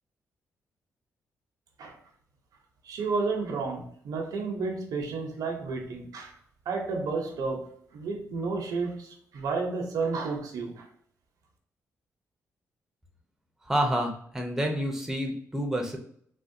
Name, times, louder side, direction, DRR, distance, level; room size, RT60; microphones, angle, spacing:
voice 1, 2.8-6.3 6.7-10.8, right 4 dB, 80° right, 0.7 m, -31 dB
voice 2, 13.7-16.0, equal, 5° right, 0.6 m, -28 dB
3.6 x 2.1 x 2.6 m
cardioid pair, 115°, 6 cm